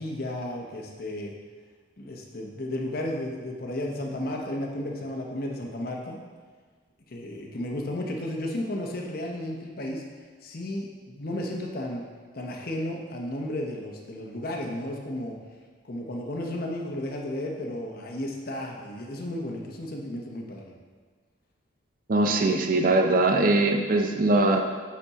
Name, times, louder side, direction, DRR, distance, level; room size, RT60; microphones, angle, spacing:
voice 1, 0.0-1.3 2.0-6.2 7.1-10.1 10.4-12.1 12.3-15.4 15.8-20.7, left 1 dB, 45° left, 0 dB, 0.8 m, -33 dB
voice 2, 22.1-24.6, right 2 dB, 45° right, 3 dB, 0.5 m, -21 dB
8.6 x 4.1 x 3.6 m, 1.5 s
head